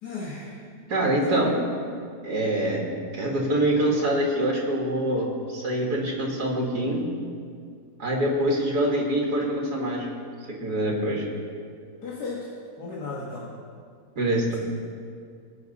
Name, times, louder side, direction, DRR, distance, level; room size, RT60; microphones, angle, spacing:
voice 1, 0.0-0.7 1.1-1.5 12.0-12.5 12.8-13.5, left 3 dB, 85° left, -6 dB, 2.1 m, -35 dB
voice 2, 0.9-1.6 2.2-2.8 3.1-7.1 8.0-10.1 10.5-11.3 14.2-14.6, right 1 dB, 80° right, -2 dB, 2.3 m, -25 dB
19.5 x 7.0 x 4.1 m, 2.2 s
omnidirectional pair, 1.7 m